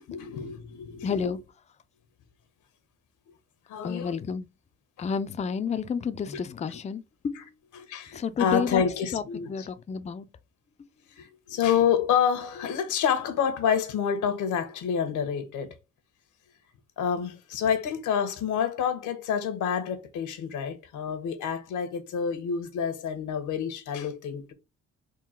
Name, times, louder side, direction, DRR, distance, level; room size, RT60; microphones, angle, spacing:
voice 1, 0.0-1.3 3.7-4.2 6.3-6.4 7.3-7.4 7.7-9.7 11.1-15.8 17.0-24.5, left 7 dB, 80° left, 0.9 m, -28 dB
voice 2, 1.0-1.4 3.8-4.5 5.0-7.4 8.1-8.8 9.1-10.3, left 6 dB, 25° left, 0.4 m, -30 dB
3.8 x 2.2 x 4.2 m
cardioid pair, 90°, 30 cm